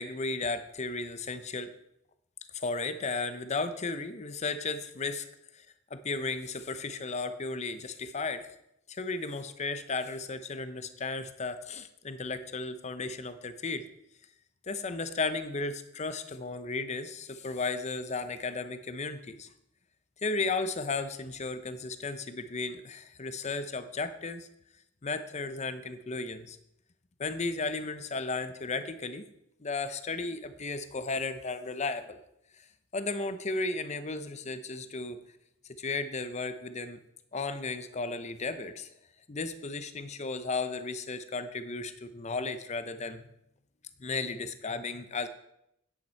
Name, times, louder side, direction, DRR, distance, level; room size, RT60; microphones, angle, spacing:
voice 1, 0.0-1.7 2.5-5.3 5.5-5.7 5.9-8.5 8.9-13.9 14.7-19.5 20.2-24.5 25.0-26.6 27.2-29.2 29.6-32.2 32.6-32.7 32.9-35.2 35.8-37.0 37.3-38.9 39.3-43.2 44.0-45.3, left 3 dB, 35° left, 11 dB, 0.7 m, -34 dB
9.6 x 8.6 x 4.4 m, 0.80 s
head